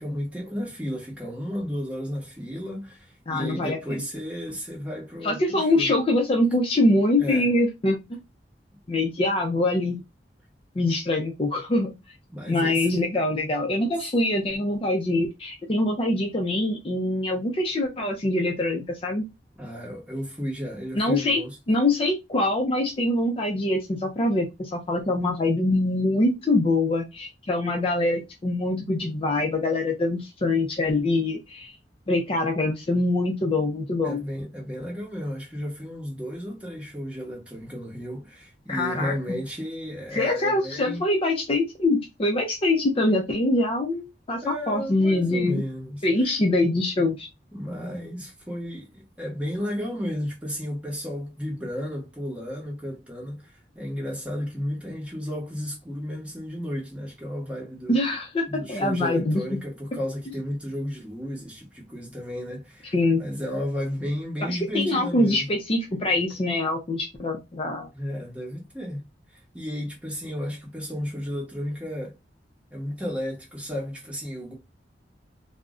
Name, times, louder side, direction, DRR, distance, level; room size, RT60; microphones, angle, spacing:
voice 1, 0.0-5.9 7.2-7.5 12.3-12.9 19.6-21.5 34.0-41.0 44.4-46.3 47.5-58.0 58.5-65.5 67.9-69.0 69.3-72.1 72.7-74.5, equal, 5° right, 1.0 m, -33 dB
voice 2, 3.3-4.0 5.2-8.2 8.9-10.0 10.8-11.9 12.5-19.2 20.9-21.4 21.7-31.7 32.1-34.2 38.7-39.1 40.1-45.6 46.0-47.3 57.9-59.4 62.9-63.2 64.5-67.9, left 2 dB, 30° left, 0.4 m, -24 dB
2.4 x 2.0 x 3.5 m
head